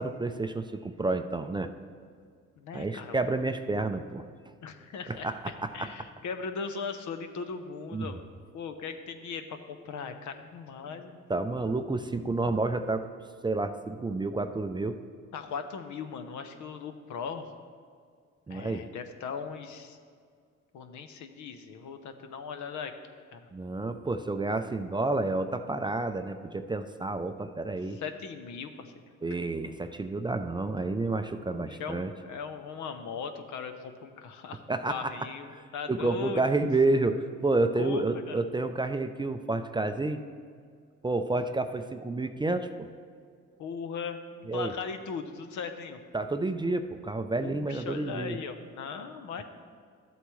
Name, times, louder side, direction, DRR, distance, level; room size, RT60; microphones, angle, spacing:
voice 1, 0.0-1.7 2.7-4.2 5.1-5.9 7.9-8.1 11.3-13.1 13.4-15.0 18.5-18.8 23.5-28.0 29.2-32.1 34.7-35.1 35.5-40.2 41.0-42.9 44.5-44.7 46.1-48.4, right 2 dB, 15° right, 8 dB, 0.4 m, -30 dB
voice 2, 2.6-3.2 4.6-8.2 8.5-11.2 15.3-17.6 18.5-20.0 20.7-22.9 23.3-23.5 27.9-28.9 31.5-36.4 37.8-38.4 43.6-46.0 47.4-49.4, left 5 dB, 70° left, 8 dB, 0.8 m, -38 dB
12.5 x 8.1 x 3.1 m, 2.1 s
cardioid pair, 90°, 30 cm